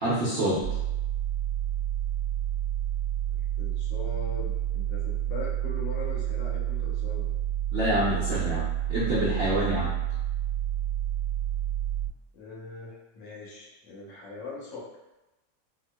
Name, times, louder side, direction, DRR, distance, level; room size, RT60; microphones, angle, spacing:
voice 1, 0.0-0.7 7.7-9.9, equal, 75° right, -8 dB, 0.5 m, -27 dB
sound 1, 0.6-12.1, right 12 dB, 25° right, 1.3 m, -29 dB
voice 2, 3.3-7.3 12.3-14.9, left 3 dB, 90° left, -5 dB, 1.6 m, -41 dB
4.6 x 2.1 x 2.2 m, 1.0 s
omnidirectional pair, 2.0 m